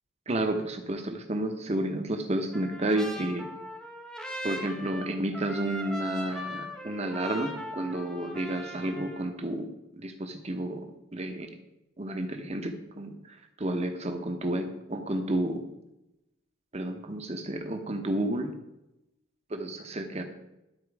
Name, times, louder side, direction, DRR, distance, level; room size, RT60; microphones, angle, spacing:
voice 1, 0.3-3.5 4.4-9.7 9.9-11.5 12.0-13.1 13.6-15.7 16.7-18.5 19.5-20.2, right 1 dB, 35° right, 5 dB, 0.9 m, -31 dB
Trumpet, 2.5-9.3, equal, 5° left, 1.0 m, -39 dB
11.5 x 4.5 x 4.7 m, 0.93 s
head